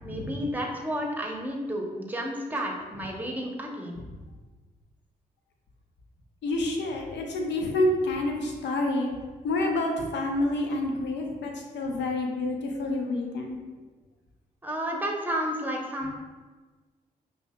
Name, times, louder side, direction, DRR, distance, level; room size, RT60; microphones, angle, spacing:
voice 1, 0.0-4.0 14.6-16.1, equal, 10° right, 0 dB, 0.8 m, -31 dB
voice 2, 6.4-9.1 9.4-13.6, left 2 dB, 60° left, 2 dB, 0.7 m, -28 dB
5.3 x 2.8 x 2.2 m, 1.3 s
hypercardioid pair, 40°, 20 cm